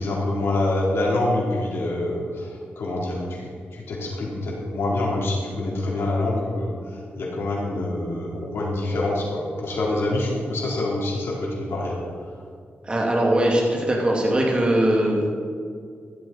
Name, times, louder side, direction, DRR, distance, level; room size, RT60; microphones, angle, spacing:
voice 1, 0.0-6.7 7.2-12.0, left 2 dB, 80° left, -4 dB, 3.8 m, -26 dB
voice 2, 12.8-15.3, right 1 dB, 25° right, -2 dB, 2.6 m, -20 dB
15.0 x 13.0 x 4.4 m, 2.2 s
wide cardioid pair, 120°, 4 cm